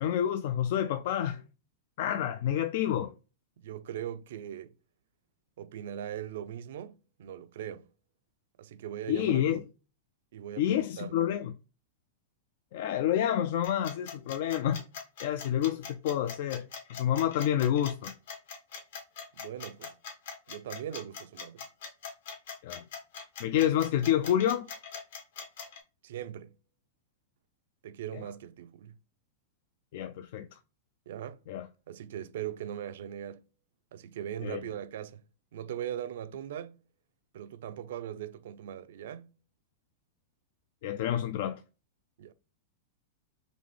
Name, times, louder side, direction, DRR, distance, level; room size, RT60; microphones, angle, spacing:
voice 1, 0.0-1.4 2.0-3.1 9.1-9.6 10.6-11.5 12.7-14.8 15.2-18.1 22.6-22.8 23.4-24.7 29.9-30.5 31.5-31.7 34.4-34.6 40.8-41.6, left 10 dB, 55° left, 0.3 m, -28 dB
voice 2, 3.6-4.7 5.6-7.9 8.6-9.6 10.3-11.1 19.3-20.0 20.5-21.6 26.0-26.6 27.8-28.9 31.1-31.4 31.9-33.4 33.9-35.2 35.5-36.8 37.3-39.3 42.2-42.3, right 10 dB, 70° right, 0.4 m, -40 dB
sound 1, 13.6-25.8, left 6 dB, 70° left, 1.3 m, -42 dB
4.1 x 2.9 x 3.2 m
supercardioid pair, 160°, 0 cm